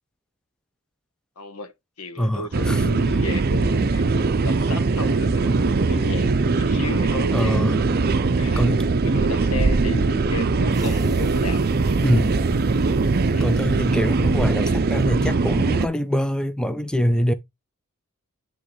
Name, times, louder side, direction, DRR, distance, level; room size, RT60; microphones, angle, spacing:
voice 1, 1.4-7.7 8.4-11.6 13.3-13.5, left 3 dB, 80° left, 1.1 m, -34 dB
voice 2, 2.2-3.2 7.3-7.8 8.6-8.9 12.0-12.4 13.4-17.3, equal, 5° left, 0.5 m, -24 dB
sound 1, 2.5-15.9, right 3 dB, 45° right, 0.5 m, -21 dB
sound 2, 10.7-15.0, right 1 dB, 15° right, 1.0 m, -40 dB
10.0 x 3.7 x 3.1 m
head